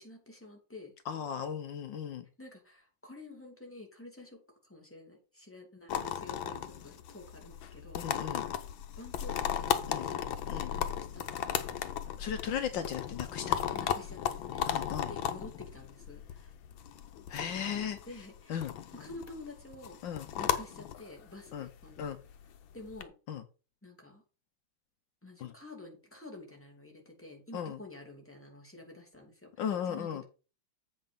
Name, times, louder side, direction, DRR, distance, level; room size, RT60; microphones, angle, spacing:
voice 1, 0.0-0.9 2.4-8.4 9.0-11.6 13.5-16.5 18.0-20.0 20.4-22.1 22.7-23.1 23.8-24.2 25.2-30.2, left 2 dB, 5° left, 1 dB, 2.4 m, -50 dB
voice 2, 1.1-2.2 7.9-8.4 9.9-10.1 10.5-10.7 12.2-13.7 14.7-15.1 17.3-18.0 18.5-18.7 20.0-20.2 21.5-21.7 22.0-22.2 23.3-23.4 25.4-25.5 27.5-27.8 29.6-30.2, left 8 dB, 75° left, 9 dB, 1.5 m, -36 dB
sound 1, 5.9-23.0, left 9 dB, 90° left, 1.6 m, -36 dB
8.1 x 5.4 x 5.2 m, 0.34 s
omnidirectional pair, 2.1 m